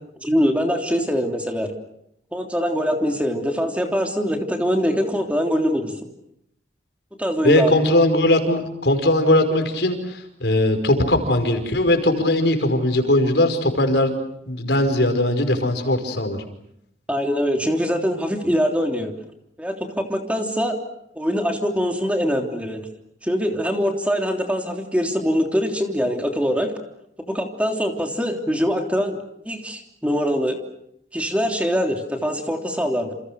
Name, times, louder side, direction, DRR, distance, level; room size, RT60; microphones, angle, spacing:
voice 1, 0.2-1.7 2.3-5.9 7.2-7.7 17.1-19.1 19.6-20.8 21.2-22.8 23.2-26.7 27.3-29.2 29.4-30.6 31.1-33.1, equal, 10° right, 3 dB, 3.3 m, -23 dB
voice 2, 7.4-14.1 14.5-16.4, left 1 dB, 85° left, 7 dB, 5.3 m, -19 dB
29.0 x 28.5 x 6.5 m, 0.77 s
head